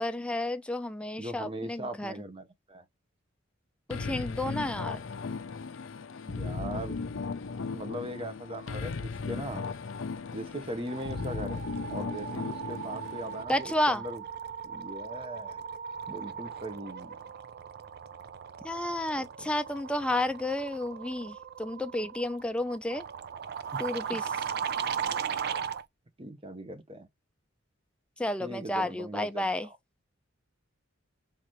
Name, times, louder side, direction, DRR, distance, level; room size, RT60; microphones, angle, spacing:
voice 1, 0.0-2.1 3.9-5.0 13.5-14.0 18.6-23.0 23.8-24.3 28.2-29.7, left 1 dB, 5° left, 0.5 m, -31 dB
voice 2, 1.2-2.8 6.2-7.0 7.7-9.7 10.3-11.6 11.9-14.2 14.6-15.6 16.1-17.2 19.1-19.5 23.7-23.8 24.1-24.2 26.2-27.1 28.4-29.8, right 1 dB, 30° right, 0.8 m, -40 dB
sound 1, 3.9-13.4, left 4 dB, 70° left, 0.5 m, -36 dB
sound 2, 10.0-10.3 10.6-25.8, right 7 dB, 50° right, 0.4 m, -38 dB
3.9 x 2.6 x 3.0 m
head